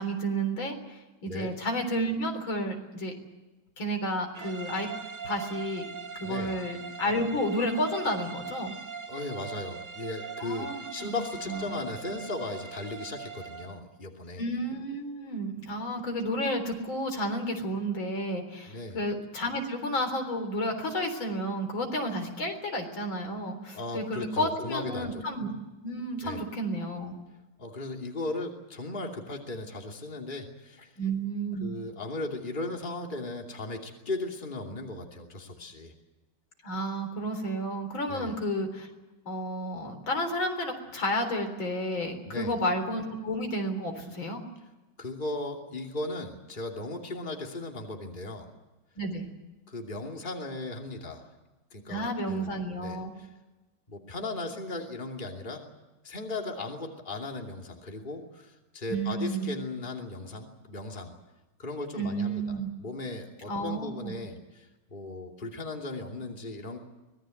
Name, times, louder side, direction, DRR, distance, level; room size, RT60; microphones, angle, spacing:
voice 1, 0.0-3.1 3.8-4.9 5.2-5.9 6.2-8.8 10.4-11.1 11.5-11.8 14.4-25.5 25.8-27.2 31.0-31.8 36.6-38.9 39.3-44.4 49.0-49.3 51.9-53.1 58.9-59.5 61.9-62.7 63.5-64.1, equal, 75° left, 5 dB, 4.6 m, -31 dB
sound 1, 4.3-13.8, right 6 dB, 40° right, 0.7 m, -41 dB
voice 2, 6.2-6.6 9.1-14.4 18.7-19.0 23.7-25.5 26.2-26.4 27.6-30.9 31.6-35.9 38.1-38.4 42.3-42.6 45.0-48.5 49.7-51.3 51.7-52.5 52.8-53.3 53.9-55.7 56.0-61.1 61.6-66.8, left 2 dB, 25° left, 1 dB, 2.9 m, -37 dB
25.0 x 20.0 x 7.8 m, 1.1 s
omnidirectional pair, 2.2 m